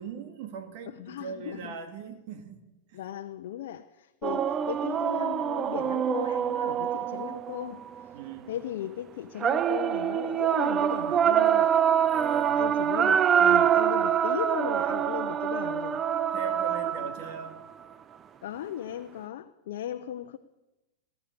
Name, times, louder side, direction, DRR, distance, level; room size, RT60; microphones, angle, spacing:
voice 1, 0.0-2.6 2.9-3.0 8.1-8.5 12.1-12.6 16.3-17.6, right 6 dB, 60° right, 2.2 m, -40 dB
voice 2, 0.9-1.8 2.9-8.2 8.5-11.7 12.5-16.0 18.4-20.4, left 11 dB, 70° left, 0.8 m, -37 dB
sound 1, 4.2-8.0 9.4-17.5, right 9 dB, 30° right, 0.5 m, -25 dB
19.0 x 11.0 x 6.9 m
hypercardioid pair, 120°, 0 cm